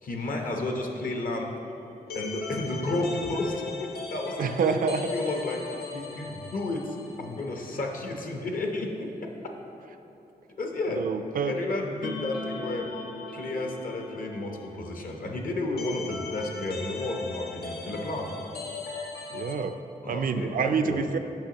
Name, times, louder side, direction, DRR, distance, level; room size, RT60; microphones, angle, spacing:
voice 1, 0.0-1.5 2.1-9.1 10.6-11.0 11.5-12.9 13.3-18.3 20.0-21.0, left 2 dB, 60° left, 2 dB, 0.9 m, -32 dB
sound 1, 1.3-8.0 8.3-8.4 12.0-19.6, left 4 dB, 85° left, 0.6 m, -39 dB
voice 2, 4.4-5.0 10.9-11.5 19.3-19.7 20.1-21.2, right 5 dB, 60° right, 8 dB, 0.4 m, -27 dB
8.7 x 5.7 x 2.9 m, 2.9 s
cardioid pair, 60°, 16 cm